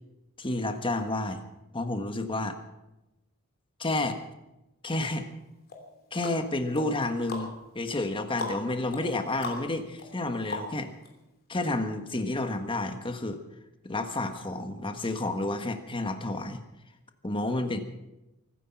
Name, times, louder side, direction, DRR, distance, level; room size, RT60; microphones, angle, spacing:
voice 1, 0.4-1.4 1.7-2.6 3.8-4.2 4.8-5.3 6.1-10.9 11.5-13.4 13.8-16.6 17.2-17.8, left 2 dB, 25° left, 7 dB, 1.4 m, -30 dB
sound 1, 5.7-11.1 11.5-11.6, left 2 dB, 45° left, 3.2 m, -40 dB
24.0 x 10.0 x 5.9 m, 0.96 s
head